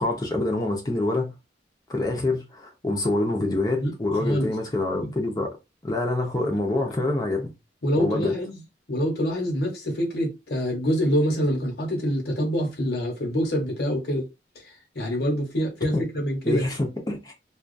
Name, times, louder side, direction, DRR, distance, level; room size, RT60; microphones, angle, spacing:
voice 1, 0.0-1.3 1.9-5.5 5.8-7.5 8.0-8.4 15.9-16.0 16.4-17.3, left 2 dB, 20° left, 0.6 m, -26 dB
voice 2, 4.2-4.5 7.8-8.6 8.9-14.3 14.5-16.6, equal, 60° left, 1.1 m, -26 dB
2.4 x 2.3 x 2.5 m
head